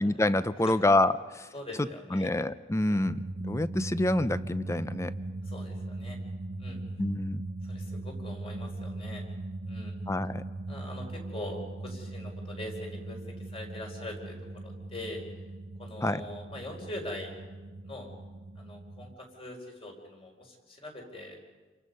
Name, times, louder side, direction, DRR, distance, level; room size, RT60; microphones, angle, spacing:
voice 1, 0.0-1.5 2.1-5.1 7.0-7.4 10.1-10.4 16.0-16.2, left 1 dB, 15° left, 14 dB, 0.6 m, -27 dB
voice 2, 1.5-2.3 2.9-3.1 5.4-6.2 6.6-6.8 7.6-9.2 9.7-10.0 10.7-15.2 15.8-17.4 17.8-18.1 18.5-21.4, left 1 dB, 30° left, 2 dB, 4.6 m, -42 dB
sound 1, 3.0-19.2, right 2 dB, 85° right, 1.2 m, -39 dB
28.5 x 24.5 x 5.5 m, 1.3 s
head